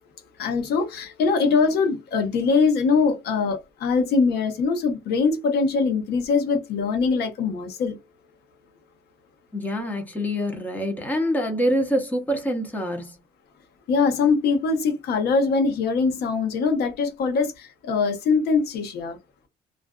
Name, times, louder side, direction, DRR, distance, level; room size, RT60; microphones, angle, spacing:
voice 1, 0.4-8.0 13.9-19.2, left 4 dB, 75° left, 0.9 m, -22 dB
voice 2, 9.5-13.2, equal, 10° left, 0.7 m, -25 dB
2.4 x 2.4 x 2.2 m
cardioid pair, 110°, 17 cm